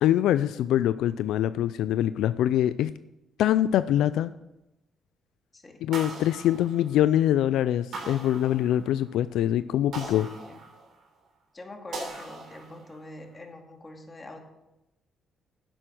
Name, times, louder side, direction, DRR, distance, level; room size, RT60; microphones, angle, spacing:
voice 1, 0.0-2.9 3.4-4.3 5.8-10.3, left 12 dB, 85° left, 14 dB, 0.3 m, -24 dB
sound 1, 5.9-7.3 7.9-9.1 9.9-11.2 11.9-13.1, right 3 dB, 65° right, 3.4 m, -40 dB
voice 2, 10.0-10.6 11.5-14.4, left 2 dB, 25° left, 3 dB, 2.3 m, -44 dB
10.5 x 7.9 x 6.3 m, 0.92 s
cardioid pair, 90°, 0 cm